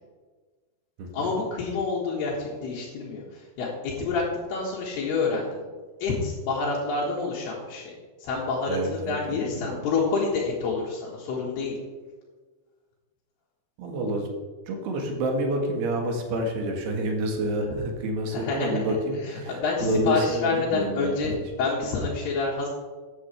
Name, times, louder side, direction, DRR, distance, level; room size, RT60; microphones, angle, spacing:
voice 1, 1.1-5.6 6.0-11.8 18.3-19.0 19.2-21.3 21.6-22.7, left 4 dB, 80° left, -6 dB, 3.6 m, -28 dB
voice 2, 8.7-9.7 13.8-14.3 14.7-19.6 19.8-21.4, right 1 dB, 85° right, 2 dB, 3.7 m, -28 dB
14.0 x 9.5 x 3.3 m, 1.4 s
omnidirectional pair, 4.6 m